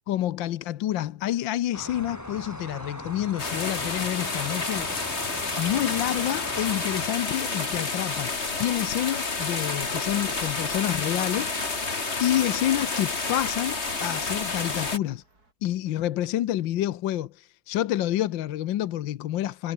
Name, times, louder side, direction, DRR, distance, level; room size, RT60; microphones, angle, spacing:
voice 1, 0.1-15.2 15.6-19.7, left 13 dB, 70° left, 1.4 m, -28 dB
sound 1, 1.7-7.1, equal, 5° left, 6.5 m, -39 dB
sound 2, 3.4-15.0, left 3 dB, 30° left, 2.7 m, -30 dB
sound 3, 4.7-15.5, right 2 dB, 45° right, 6.1 m, -53 dB
omnidirectional pair, 2.3 m